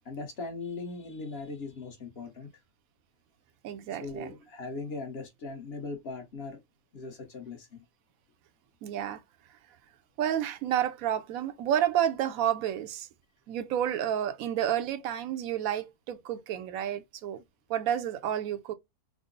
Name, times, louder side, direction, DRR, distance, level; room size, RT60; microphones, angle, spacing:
voice 1, 0.0-2.5 3.9-6.6 6.9-7.8, left 3 dB, 45° left, 1.0 m, -39 dB
voice 2, 3.6-4.3 8.8-9.2 10.2-13.1 13.5-17.4 17.7-18.7, right 10 dB, 70° right, 0.9 m, -30 dB
3.6 x 2.0 x 3.8 m
omnidirectional pair, 1.7 m